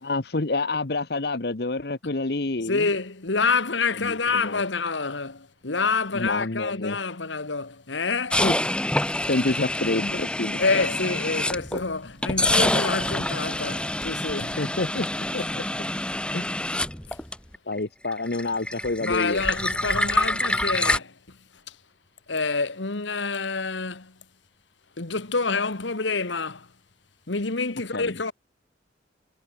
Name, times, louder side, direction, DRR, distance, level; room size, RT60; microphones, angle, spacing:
voice 1, 0.0-2.9 3.9-4.7 6.1-7.0 8.4-8.6 9.3-10.8 14.6-15.1 15.3-15.6 16.3-16.5 17.7-19.4 27.9-28.2, left 2 dB, 55° left, 1.1 m, -28 dB
voice 2, 2.7-8.4 10.6-14.6 15.4-15.5 17.1-17.2 19.0-21.4 21.7-21.8 22.3-24.2 25.0-26.7 27.3-28.3, left 4 dB, 75° left, 1.7 m, -27 dB
sound 1, 8.3-11.8 12.2-17.8 18.0-21.0, left 1 dB, 5° left, 1.7 m, -26 dB
head